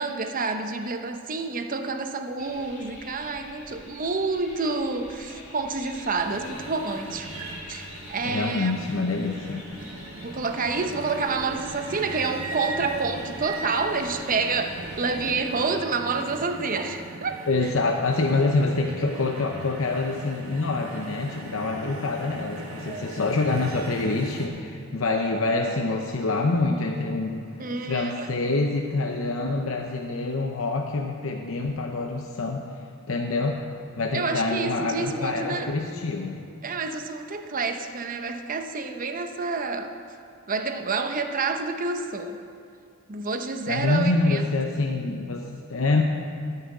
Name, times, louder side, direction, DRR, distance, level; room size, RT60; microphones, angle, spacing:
voice 1, 0.0-7.3 7.7-8.8 10.2-18.0 22.7-23.1 27.6-28.3 34.1-35.7 36.6-40.0 40.5-42.4 43.1-44.4, right 4 dB, 40° right, 6 dB, 0.8 m, -28 dB
sound 1, 2.4-15.7, left 2 dB, 45° left, 3.8 m, -46 dB
sound 2, 6.2-24.5, right 2 dB, 80° right, 1.6 m, -39 dB
voice 2, 8.2-9.6 17.5-27.5 27.9-32.7 33.1-33.7 34.0-36.4 43.7-46.0, left 3 dB, 70° left, 2 dB, 0.8 m, -26 dB
13.5 x 5.7 x 9.0 m, 2.3 s
head